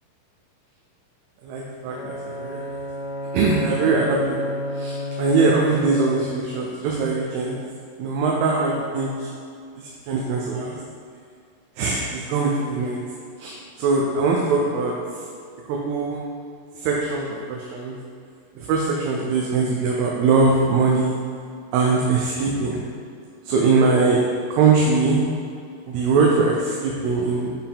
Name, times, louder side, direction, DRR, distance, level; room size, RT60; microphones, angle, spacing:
voice 1, 1.4-2.6 3.3-7.6 8.0-9.3 9.8-10.7 11.8-13.0 13.4-14.9 15.7-16.2 16.8-18.0 18.6-21.2 21.7-22.8 23.5-24.2 24.5-25.2 25.9-27.6, right 4 dB, 85° right, -2 dB, 2.6 m, -21 dB
Bowed string instrument, 1.9-6.7, left 1 dB, 80° left, 2.5 m, -31 dB
7.5 x 4.5 x 3.6 m, 2.3 s
omnidirectional pair, 4.5 m